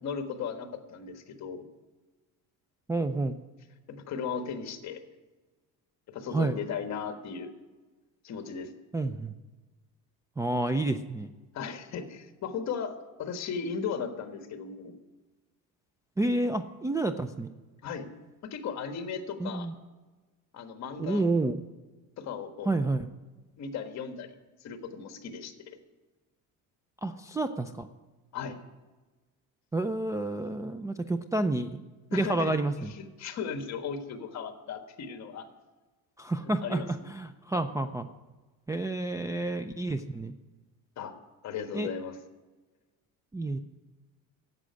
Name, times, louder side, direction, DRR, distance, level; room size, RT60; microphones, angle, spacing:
voice 1, 0.0-1.6 3.9-5.0 6.1-7.5 8.2-8.7 11.5-14.9 17.8-18.1 18.4-19.7 20.5-21.2 22.2-22.7 23.6-24.3 24.6-25.7 28.3-28.6 32.1-32.6 33.0-35.5 36.4-36.9 41.0-41.2 41.4-42.2, left 6 dB, 50° left, 7 dB, 1.5 m, -36 dB
voice 2, 2.9-3.4 6.3-6.6 8.9-9.3 10.4-11.3 16.2-17.5 19.4-19.7 21.0-21.6 22.6-23.1 27.0-27.9 29.7-31.8 32.1-32.9 36.2-38.1 38.7-40.3 41.7-41.9 43.3-43.6, right 2 dB, 10° right, 4 dB, 0.3 m, -29 dB
11.5 x 7.7 x 9.4 m, 1.2 s
cardioid pair, 145°, 35 cm